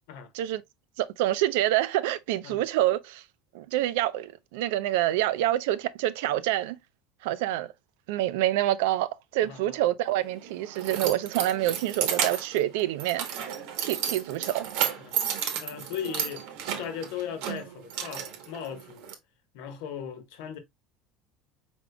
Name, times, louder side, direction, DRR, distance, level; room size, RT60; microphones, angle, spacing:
voice 1, 1.0-3.2 3.5-6.8 7.2-7.7 8.1-14.7, right 14 dB, 90° right, 0.4 m, -27 dB
voice 2, 9.4-9.8 15.0-15.2 15.6-16.4 16.8-19.1 19.5-20.6, left 8 dB, 75° left, 1.0 m, -37 dB
Keys jangling, 10.1-19.1, right 8 dB, 70° right, 1.0 m, -33 dB
5.0 x 3.6 x 2.2 m
cardioid pair, 165°, 0 cm